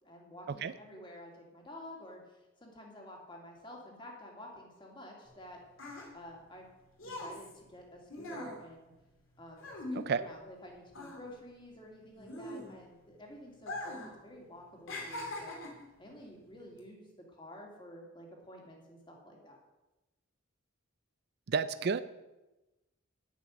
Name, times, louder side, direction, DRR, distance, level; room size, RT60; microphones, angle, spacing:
voice 1, 0.0-5.6 6.1-6.7 7.0-8.9 9.4-15.6 16.0-19.6, left 1 dB, 25° left, 0 dB, 2.7 m, -50 dB
sound 1, 5.3-10.6 10.9-13.0 13.6-14.2 14.4-15.9 16.6-16.8, left 1 dB, 65° left, 2.8 m, -42 dB
voice 2, 21.5-22.0, right 5 dB, 50° right, 14 dB, 0.4 m, -31 dB
9.8 x 9.3 x 6.6 m, 1.0 s
head